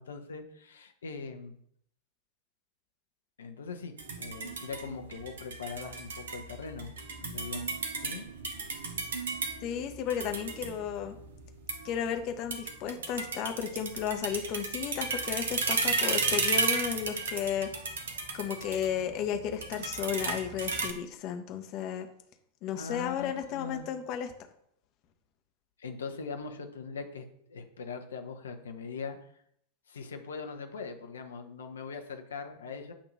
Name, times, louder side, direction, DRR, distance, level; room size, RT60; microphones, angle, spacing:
voice 1, 0.0-1.6 3.4-7.7 8.0-8.3 22.8-23.9 25.8-29.2 29.9-32.9, left 5 dB, 65° left, 5 dB, 1.0 m, -41 dB
sound 1, 4.0-20.9, right 4 dB, 65° right, 0.9 m, -34 dB
voice 2, 9.6-11.1 11.8-17.7 18.3-22.1 22.6-24.3, left 8 dB, 40° left, 6 dB, 1.0 m, -33 dB
8.7 x 2.9 x 5.5 m, 0.70 s
figure-of-eight pair, 90°, 0 cm